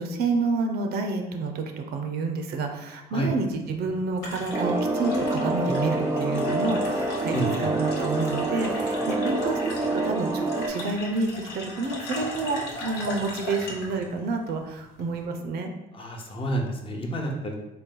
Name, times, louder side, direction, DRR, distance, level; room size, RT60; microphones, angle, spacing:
voice 1, 0.0-15.7, right 3 dB, 70° right, 4 dB, 0.6 m, -29 dB
sound 1, 3.5-15.3, left 1 dB, 85° left, 0.9 m, -38 dB
sound 2, 4.5-10.7, right 2 dB, 15° right, 0.4 m, -27 dB
voice 2, 7.3-7.7 15.9-17.5, right 1 dB, 30° left, 1 dB, 0.7 m, -29 dB
4.1 x 2.2 x 3.8 m, 0.98 s
cardioid pair, 110°, 17 cm